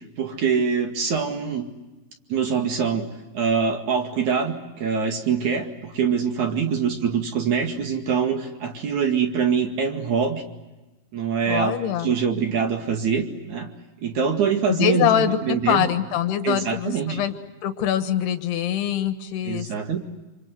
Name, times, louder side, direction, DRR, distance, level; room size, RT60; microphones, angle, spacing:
voice 1, 0.0-1.7 2.3-3.1 3.3-10.4 11.1-13.7 14.0-15.9 16.4-17.2 19.4-20.0, right 6 dB, 50° right, 4 dB, 2.7 m, -24 dB
voice 2, 11.5-12.1 14.7-17.3 17.6-19.7, left 10 dB, 70° left, 8 dB, 3.1 m, -24 dB
27.5 x 27.0 x 7.9 m, 1.1 s
omnidirectional pair, 5.6 m